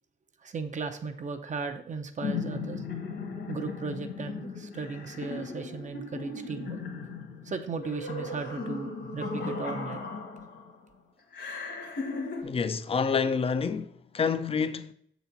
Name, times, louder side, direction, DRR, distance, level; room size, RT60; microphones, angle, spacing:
voice 1, 0.4-2.8 3.5-6.8 7.4-10.1, right 4 dB, 40° right, 0.6 m, -36 dB
sound 1, 2.2-10.7 11.3-12.4, left 4 dB, 65° left, 1.6 m, -37 dB
voice 2, 12.4-14.9, left 5 dB, 30° left, 0.4 m, -28 dB
7.2 x 4.0 x 5.7 m
wide cardioid pair, 165°, 19 cm